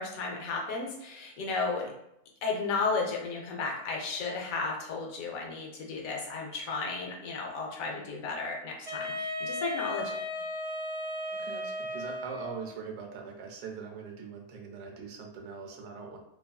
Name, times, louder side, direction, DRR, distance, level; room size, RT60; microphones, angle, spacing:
voice 1, 0.0-1.9 2.4-10.2, left 4 dB, 70° left, 0 dB, 1.0 m, -34 dB
Wind instrument woodwind instrument, 8.9-12.7, left 1 dB, 40° right, 1.1 m, -35 dB
voice 2, 11.4-16.2, right 5 dB, 85° right, 2 dB, 1.1 m, -42 dB
2.9 x 2.4 x 2.3 m, 0.80 s
omnidirectional pair, 1.6 m